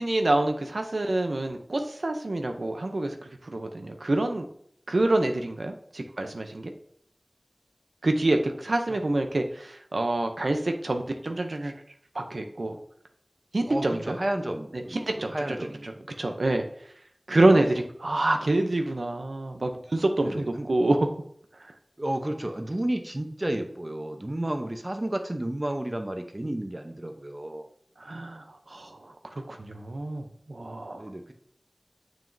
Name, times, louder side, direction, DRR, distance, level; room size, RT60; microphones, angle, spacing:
voice 1, 0.0-3.2 3.4-4.5 4.9-6.7 8.0-11.7 12.1-12.8 13.5-14.2 14.7-15.6 15.8-15.9 16.2-16.7 17.3-21.1 28.0-31.0, right 2 dB, 85° right, 5 dB, 0.6 m, -27 dB
voice 2, 13.7-15.9 17.5-17.8 20.2-20.7 22.0-27.7 30.9-31.3, right 1 dB, 35° right, 5 dB, 0.8 m, -32 dB
7.0 x 6.1 x 2.6 m, 0.65 s
wide cardioid pair, 50°, 0 cm